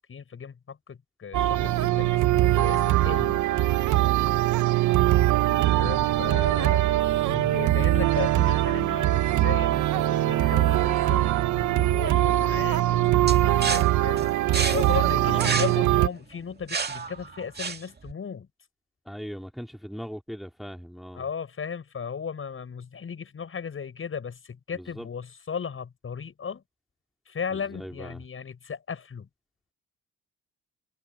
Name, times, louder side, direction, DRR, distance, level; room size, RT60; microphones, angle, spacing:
voice 1, 0.1-3.4 5.8-6.8 7.2-14.3 14.7-18.5 21.1-26.6 27.3-29.3, left 6 dB, 45° left, 7.6 m, -36 dB
sound 1, 1.3-16.1, right 15 dB, 75° right, 0.9 m, -22 dB
voice 2, 4.9-5.3 15.2-15.8 19.0-21.3 24.7-25.1 27.5-28.2, equal, ahead, 2.9 m, -39 dB
sound 2, 13.3-18.1, right 5 dB, 35° right, 2.0 m, -31 dB
cardioid pair, 90°, 30 cm